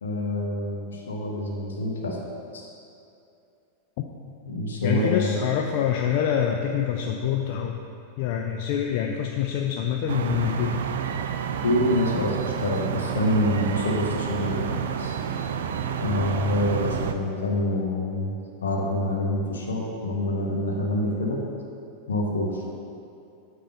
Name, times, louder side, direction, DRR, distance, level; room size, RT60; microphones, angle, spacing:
voice 1, 0.0-2.2 2.5-2.7 4.4-5.4 11.6-15.1 16.0-18.3 18.6-21.4 22.1-22.6, left 1 dB, 65° left, -1 dB, 1.2 m, -26 dB
voice 2, 4.8-7.8 8.2-10.8, left 9 dB, 45° left, 2 dB, 0.4 m, -26 dB
sound 1, 10.1-17.1, right 8 dB, 60° right, 0.4 m, -30 dB
8.6 x 3.8 x 5.3 m, 2.6 s
figure-of-eight pair, 90°, 0 cm